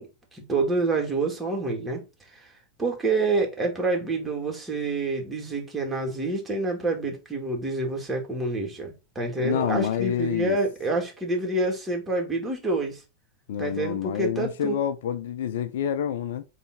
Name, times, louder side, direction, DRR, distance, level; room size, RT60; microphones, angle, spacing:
voice 1, 0.0-2.0 2.3-2.5 2.8-13.0 13.6-14.8, right 3 dB, 15° right, 2.5 m, -27 dB
voice 2, 9.4-10.6 13.5-16.4, left 9 dB, 55° left, 0.5 m, -28 dB
8.3 x 3.3 x 4.2 m
figure-of-eight pair, 90°, 0 cm